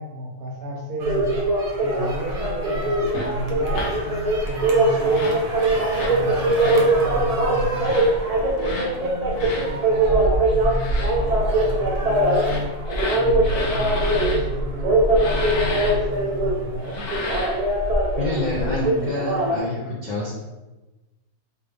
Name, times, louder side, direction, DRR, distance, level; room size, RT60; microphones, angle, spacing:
voice 1, 0.0-1.4 1.8-5.5 6.0-8.1 8.6-12.8 13.1-17.1, equal, 70° right, -1 dB, 1.3 m, -32 dB
sound 1, 1.0-19.6, right 1 dB, 40° right, 0.6 m, -22 dB
sound 2, 3.1-3.3 3.7-3.9 5.0-5.4 5.9-6.2 6.5-6.9 7.8-8.1 8.6-8.9 9.4-9.7 10.6-11.1 12.2-14.4 15.1-15.9 16.8-17.6, left 2 dB, 80° left, 1.3 m, -32 dB
voice 2, 18.1-20.3, left 2 dB, 55° left, -5 dB, 0.5 m, -27 dB
3.8 x 3.5 x 3.4 m, 1.1 s
omnidirectional pair, 1.6 m